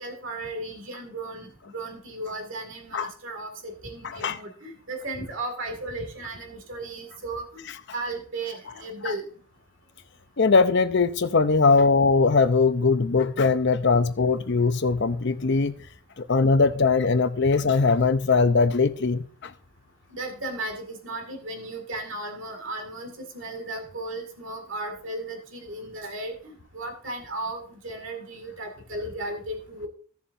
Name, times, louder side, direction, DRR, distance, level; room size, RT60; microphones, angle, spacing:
voice 1, 0.0-9.3 20.1-29.9, right 2 dB, 65° right, 2.2 m, -35 dB
voice 2, 4.0-4.4 9.0-9.1 10.4-15.8 16.2-19.5, left 4 dB, 60° left, 0.7 m, -21 dB
16.0 x 7.1 x 2.6 m
head